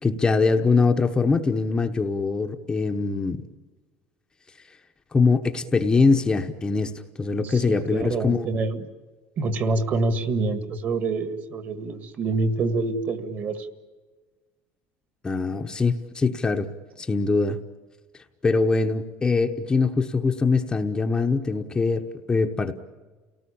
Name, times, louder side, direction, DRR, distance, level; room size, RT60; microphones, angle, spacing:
voice 1, 0.0-3.4 5.1-6.9 7.2-8.5 15.2-16.7 17.0-17.6 18.4-22.0 22.3-22.8, left 4 dB, 15° left, 4 dB, 1.0 m, -22 dB
voice 2, 7.4-8.8 9.4-13.7, right 3 dB, 35° right, 10 dB, 2.0 m, -26 dB
29.5 x 18.5 x 8.6 m, 1.4 s
cardioid pair, 165°, 5 cm